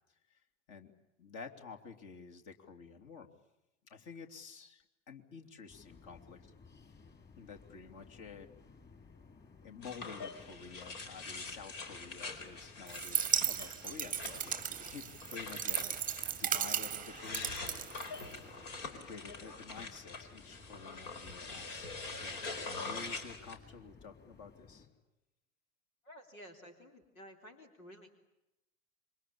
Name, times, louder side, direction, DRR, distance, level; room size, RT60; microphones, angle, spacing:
voice 1, 1.2-3.3 3.9-6.5 7.4-8.5 9.6-18.6 18.9-21.8 22.1-22.4 22.8-24.9, left 5 dB, 50° left, 3 dB, 3.3 m, -51 dB
sound 1, 5.7-24.9, left 4 dB, 25° left, 5.2 m, -58 dB
sound 2, 9.8-23.6, left 3 dB, 65° left, 4.6 m, -45 dB
sound 3, 12.9-18.6, right 9 dB, 20° right, 0.9 m, -36 dB
voice 2, 26.0-28.1, equal, 90° left, 5 dB, 3.4 m, -53 dB
27.0 x 24.5 x 8.7 m, 0.94 s
hypercardioid pair, 90°, 40 cm